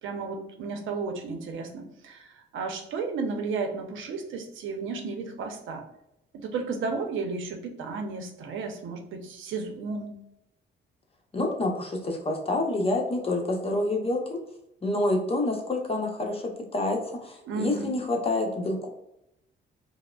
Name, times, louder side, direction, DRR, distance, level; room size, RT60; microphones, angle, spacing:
voice 1, 0.0-5.8 6.4-10.2 17.5-17.9, right 4 dB, 80° right, 4 dB, 0.7 m, -33 dB
voice 2, 11.3-14.4 14.8-18.9, left 2 dB, 30° left, 1 dB, 0.8 m, -28 dB
4.6 x 2.1 x 2.3 m, 0.83 s
cardioid pair, 90°, 20 cm